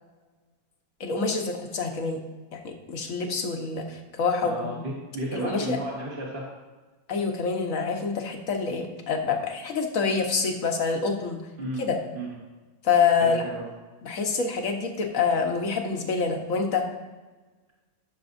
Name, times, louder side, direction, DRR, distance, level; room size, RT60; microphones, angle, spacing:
voice 1, 1.0-2.2 2.5-4.8 5.3-5.8 7.1-11.4 11.8-12.0 12.8-13.4 14.0-16.8, left 5 dB, 65° left, 3 dB, 1.5 m, -26 dB
voice 2, 4.4-6.4 11.6-11.8 12.1-12.4 13.2-13.7, right 1 dB, 40° right, -5 dB, 1.6 m, -33 dB
15.0 x 6.8 x 2.6 m, 1.3 s
omnidirectional pair, 1.6 m